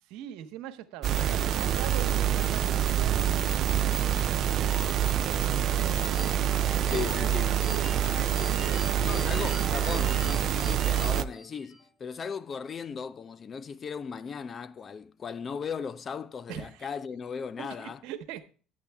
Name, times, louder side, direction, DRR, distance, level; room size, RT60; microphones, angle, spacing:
voice 1, 0.1-6.2 6.7-8.2 8.5-9.0 16.5-16.9 17.6-18.4, right 11 dB, 70° right, 0.9 m, -42 dB
sound 1, 1.0-11.2, right 10 dB, 50° right, 0.4 m, -26 dB
sound 2, 4.6-10.3, right 1 dB, 10° right, 0.8 m, -45 dB
sound 3, 6.1-11.9, left 1 dB, 55° left, 5.2 m, -43 dB
voice 2, 6.8-7.6 8.4-8.5 9.0-18.0, left 6 dB, 35° left, 0.5 m, -37 dB
9.8 x 8.3 x 3.4 m
supercardioid pair, 95°, 0 cm